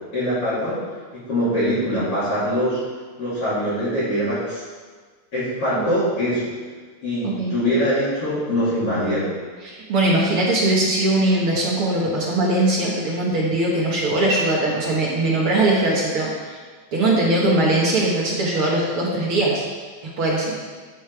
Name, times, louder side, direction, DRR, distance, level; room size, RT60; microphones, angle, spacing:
voice 1, 0.1-0.8 1.3-2.8 3.2-4.6 5.3-6.5 7.0-9.3, equal, 40° left, -12 dB, 3.6 m, -23 dB
voice 2, 9.6-16.6 16.9-19.6 20.2-20.5, right 2 dB, 55° right, -4 dB, 1.6 m, -20 dB
12.0 x 5.6 x 4.8 m, 1.4 s
omnidirectional pair, 4.4 m